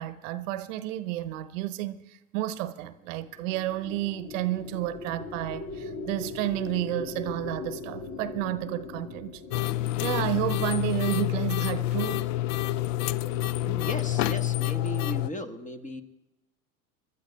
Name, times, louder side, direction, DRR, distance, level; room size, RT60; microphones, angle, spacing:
voice 1, 0.0-9.4 10.0-12.2, right 15 dB, 60° right, 0.8 m, -31 dB
sound 1, 3.3-11.8, left 3 dB, 80° left, 1.1 m, -40 dB
sound 2, 9.5-15.3, left 14 dB, 60° left, 0.5 m, -28 dB
voice 2, 13.6-16.0, equal, 15° left, 1.0 m, -36 dB
29.5 x 12.5 x 2.2 m
figure-of-eight pair, 75°, 44 cm